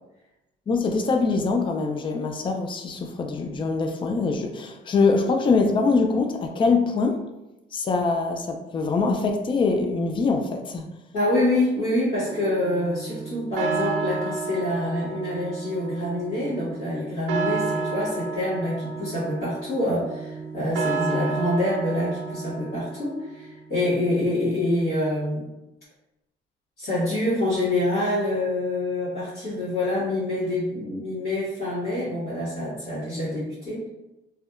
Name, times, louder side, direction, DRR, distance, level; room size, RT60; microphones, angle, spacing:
voice 1, 0.7-7.2 7.7-10.9, left 4 dB, 25° left, 4 dB, 0.3 m, -23 dB
voice 2, 11.1-25.4 26.8-33.9, left 1 dB, 55° left, -11 dB, 1.3 m, -26 dB
sound 1, 12.3-23.4, right 4 dB, 90° right, 0.4 m, -31 dB
2.6 x 2.2 x 2.4 m, 0.96 s
cardioid pair, 90°, 20 cm